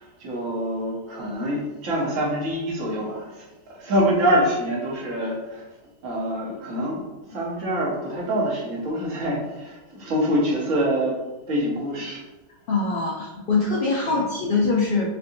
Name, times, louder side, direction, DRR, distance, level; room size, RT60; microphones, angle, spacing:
voice 1, 0.0-5.7 6.0-11.1 11.5-12.2 14.1-14.2, equal, 60° right, -4 dB, 1.3 m, -25 dB
voice 2, 12.7-15.1, left 3 dB, 80° left, -3 dB, 0.4 m, -23 dB
4.6 x 2.6 x 2.6 m, 1.1 s
omnidirectional pair, 1.6 m